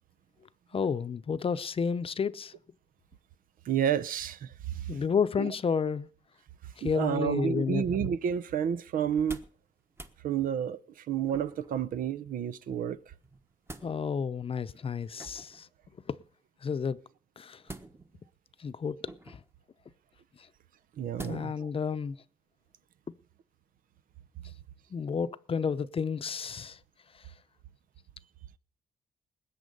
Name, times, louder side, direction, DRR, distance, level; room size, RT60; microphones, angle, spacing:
voice 1, 0.7-2.5 4.9-6.1 6.8-8.1 13.8-15.7 16.1-16.2 16.6-17.0 17.4-17.6 18.6-19.0 19.3-19.4 21.2-22.2 24.9-26.8, left 6 dB, 40° left, 0.6 m, -31 dB
voice 2, 3.6-5.0 5.4-5.5 6.8-9.4 10.2-13.0 21.0-21.7, right 9 dB, 85° right, 0.7 m, -30 dB
sound 1, 9.1-9.6 9.9-10.2 11.3-11.8 13.2-13.9 15.2-15.6 17.6-18.3 19.0-19.5 21.2-21.7 22.1-22.2, right 2 dB, 15° right, 1.3 m, -46 dB
20.0 x 8.6 x 5.3 m
cardioid pair, 100°, 14 cm